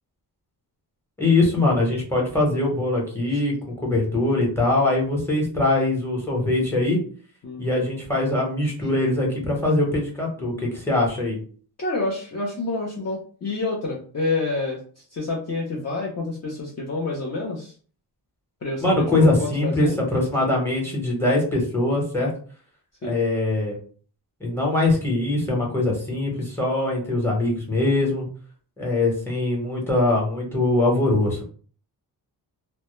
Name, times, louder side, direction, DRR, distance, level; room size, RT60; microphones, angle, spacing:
voice 1, 1.2-7.0 7.6-11.4 18.8-22.3 23.0-23.8 24.4-28.3 28.8-31.4, left 2 dB, 5° left, -1 dB, 0.8 m, -22 dB
voice 2, 7.4-7.7 10.4-10.6 11.8-17.7 18.6-20.0 23.0-23.2, left 3 dB, 40° left, -3 dB, 0.5 m, -28 dB
2.1 x 2.0 x 3.0 m, 0.43 s
wide cardioid pair, 145°, 41 cm